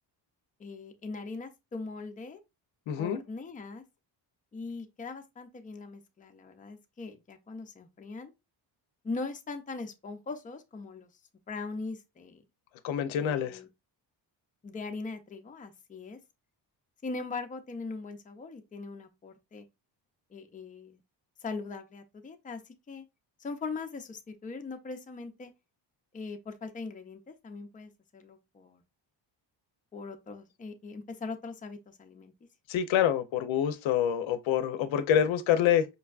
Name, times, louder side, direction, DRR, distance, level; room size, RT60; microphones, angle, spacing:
voice 1, 0.6-2.4 2.9-3.8 4.5-8.3 9.0-11.1 11.5-12.4 13.2-13.7 14.6-16.2 17.0-19.7 20.3-21.0 21.4-23.0 23.4-25.5 26.1-28.8 29.9-32.3, left 3 dB, 20° left, 0.5 m, -40 dB
voice 2, 2.9-3.2 12.8-13.6 32.7-35.9, left 9 dB, 85° left, 0.6 m, -26 dB
5.2 x 2.2 x 2.3 m
cardioid pair, 125°, 45 cm